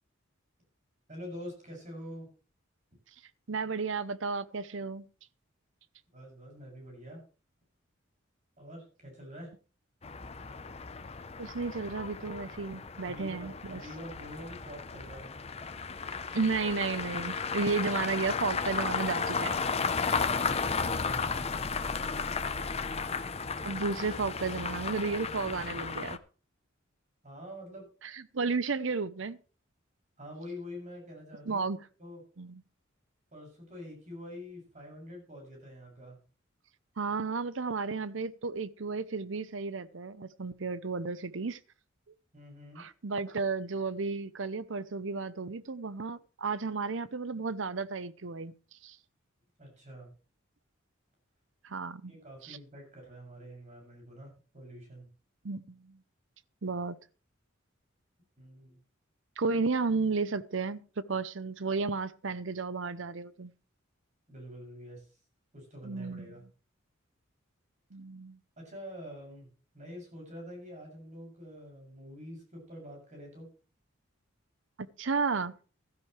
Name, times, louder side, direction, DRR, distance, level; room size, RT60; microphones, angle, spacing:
voice 1, 1.1-2.3 6.1-7.2 8.6-9.5 13.0-15.4 20.5-21.7 27.2-27.9 30.2-31.6 32.0-32.2 33.3-36.2 42.3-42.9 49.6-50.1 52.1-55.1 58.4-58.8 64.3-65.1 65.5-66.4 68.6-69.5 69.7-73.5, equal, 35° right, 7.1 m, -46 dB
voice 2, 3.5-5.0 11.4-13.8 16.3-19.5 23.6-26.2 28.1-29.4 31.5-31.8 32.4-32.6 37.0-41.6 42.8-48.5 48.8-49.0 51.6-52.1 52.4-52.6 55.4-56.0 56.6-57.0 59.4-60.8 61.1-63.5 65.8-66.3 67.9-68.4 75.0-75.6, right 4 dB, 65° right, 0.7 m, -33 dB
sound 1, 10.0-26.2, left 5 dB, 30° left, 0.8 m, -34 dB
15.5 x 13.0 x 3.3 m
head